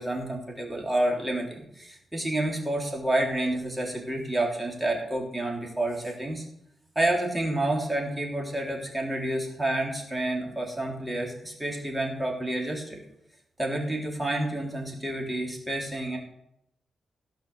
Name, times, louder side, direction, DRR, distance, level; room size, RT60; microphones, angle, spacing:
voice 1, 0.0-6.4 6.9-13.0 13.6-16.2, right 1 dB, 15° right, -1 dB, 3.1 m, -29 dB
16.0 x 5.7 x 6.7 m, 0.78 s
cardioid pair, 85°, 0 cm